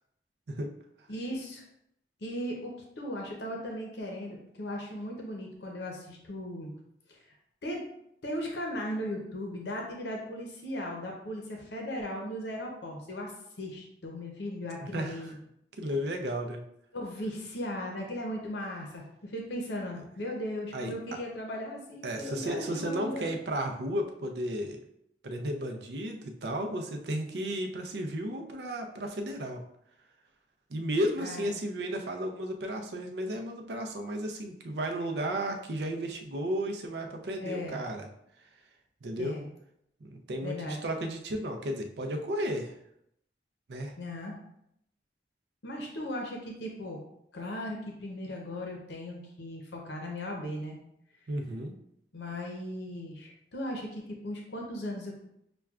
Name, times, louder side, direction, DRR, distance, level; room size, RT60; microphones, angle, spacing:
voice 1, 1.1-1.6 2.2-6.7 7.1-7.2 7.6-7.8 8.2-13.3 13.6-15.4 15.8-15.9 16.9-23.3 31.2-31.5 37.4-37.8 39.2-39.5 40.4-40.8 44.0-44.3 45.6-47.0 47.3-50.8 52.1-55.3, left 1 dB, 80° left, 0 dB, 0.7 m, -37 dB
voice 2, 14.8-15.3 15.8-16.6 20.7-20.9 22.0-24.8 25.2-29.6 30.7-38.1 39.0-39.4 40.0-42.7 43.7-43.9 51.3-51.7, right 1 dB, 75° right, 4 dB, 0.5 m, -33 dB
5.9 x 2.2 x 2.3 m, 0.76 s
head